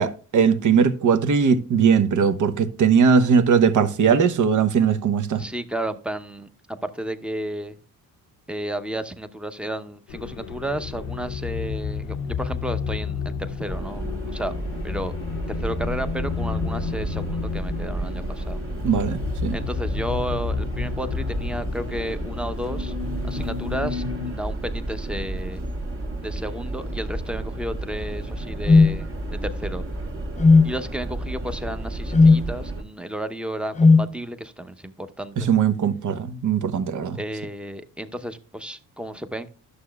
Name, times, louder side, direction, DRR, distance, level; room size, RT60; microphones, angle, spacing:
voice 1, 0.0-5.4 18.8-19.6 35.4-37.2, right 6 dB, 50° right, 1.0 m, -19 dB
voice 2, 5.4-7.8 8.5-14.5 14.8-15.1 15.5-18.6 19.5-22.9 23.2-25.6 26.2-29.8 30.6-35.5 37.1-39.5, right 1 dB, 5° right, 0.8 m, -32 dB
sound 1, 10.1-24.3, left 6 dB, 85° left, 0.8 m, -31 dB
sound 2, 13.6-32.8, right 1 dB, 35° right, 1.6 m, -31 dB
sound 3, 28.7-28.9 30.4-30.7 32.1-32.4 33.8-34.1, left 3 dB, 20° left, 0.4 m, -13 dB
11.5 x 6.7 x 2.3 m
supercardioid pair, 70°, 38 cm